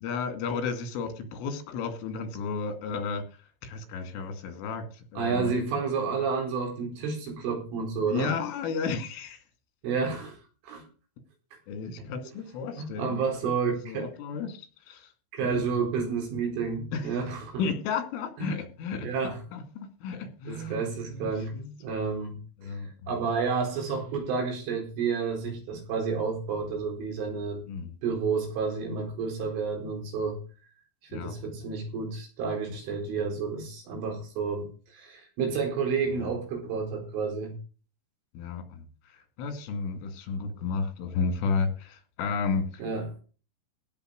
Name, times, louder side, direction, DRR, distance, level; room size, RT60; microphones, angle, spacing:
voice 1, 0.0-3.2 3.6-5.5 8.1-9.4 11.7-13.5 13.9-15.1 15.4-15.6 16.9-17.1 17.6-21.7 22.6-22.9 27.7-27.9 31.1-31.3 38.3-38.9 39.4-42.8, left 5 dB, 90° left, 8 dB, 4.9 m, -33 dB
voice 2, 5.2-8.4 9.8-10.4 10.6-10.9 12.0-12.1 12.8-14.1 14.3-14.4 15.3-17.6 18.4-18.6 19.0-19.4 20.5-21.5 21.8-22.8 23.1-27.6 28.0-30.4 31.1-37.5 42.8-43.1, right 5 dB, 80° right, 3 dB, 6.9 m, -30 dB
16.5 x 7.0 x 6.5 m, 0.36 s
omnidirectional pair, 5.6 m